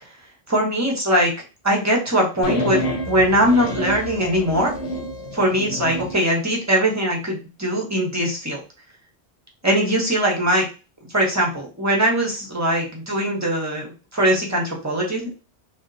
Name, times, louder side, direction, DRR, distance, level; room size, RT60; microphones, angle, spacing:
voice 1, 0.5-1.3 1.6-2.8 3.1-4.7 5.3-8.6 9.6-10.7 11.1-13.9 14.1-15.3, equal, 20° right, -2 dB, 0.7 m, -21 dB
sound 1, 2.4-6.2, left 1 dB, 75° left, 0.8 m, -28 dB
2.8 x 2.2 x 2.5 m, 0.32 s
omnidirectional pair, 1.1 m